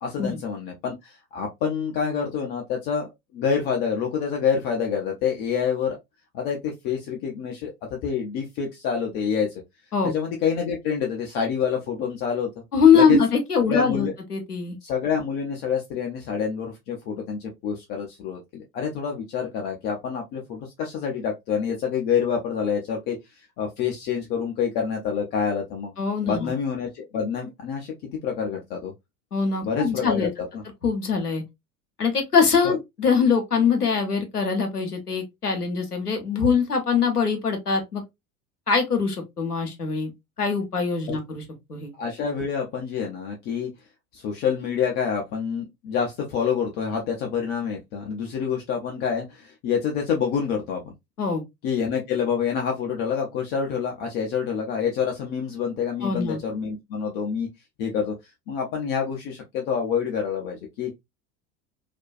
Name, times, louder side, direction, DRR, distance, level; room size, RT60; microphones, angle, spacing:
voice 1, 0.0-6.0 6.3-9.6 10.0-12.5 12.9-13.2 13.7-14.1 14.8-23.2 23.6-25.9 26.2-28.9 29.6-30.3 30.5-30.6 32.6-32.7 42.0-43.7 44.1-50.9 51.6-57.5 57.8-58.1 58.5-60.9, left 7 dB, 25° left, 0.3 m, -27 dB
voice 2, 12.7-14.8 26.0-26.5 29.3-30.3 30.8-31.4 32.0-38.0 38.7-40.1 40.4-41.4 41.7-41.9 51.2-51.4 56.0-56.4, left 5 dB, 90° left, 0.7 m, -22 dB
2.5 x 2.2 x 2.3 m
figure-of-eight pair, 75°, 45 cm